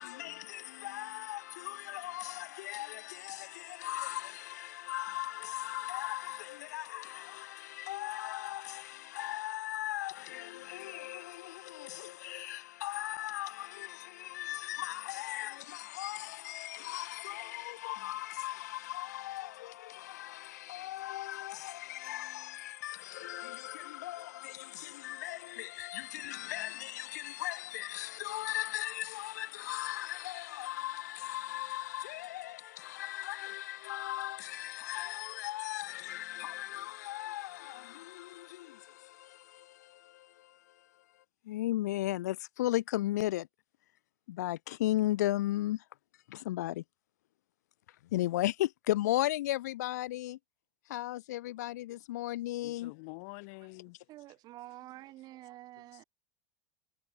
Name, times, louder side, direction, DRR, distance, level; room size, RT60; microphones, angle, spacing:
voice 1, 0.0-40.9 41.4-43.5 44.3-45.8 46.3-46.8 48.1-50.4 50.9-52.9, left 15 dB, 90° left, 1.1 m, -37 dB
voice 2, 52.6-54.1, left 33 dB, 65° left, 0.8 m, -47 dB
voice 3, 54.1-56.0, right 16 dB, 50° right, 1.9 m, -49 dB
supercardioid pair, 120°, 9 cm